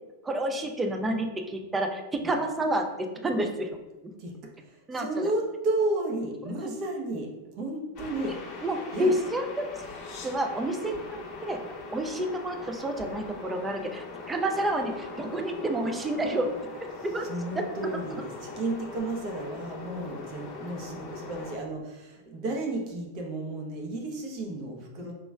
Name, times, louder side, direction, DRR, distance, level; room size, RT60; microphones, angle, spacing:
voice 1, 0.2-3.7 4.9-5.3 6.6-6.7 8.6-9.7 10.2-11.6 11.9-16.5 17.0-17.3 17.6-17.7, right 1 dB, 15° right, 4 dB, 0.4 m, -29 dB
voice 2, 4.6-9.2 17.0-25.1, right 2 dB, 40° right, 0 dB, 0.8 m, -33 dB
sound 1, 8.0-21.6, left 4 dB, 40° left, 0.7 m, -41 dB
4.6 x 3.0 x 2.3 m, 1.1 s
figure-of-eight pair, 90°, 0 cm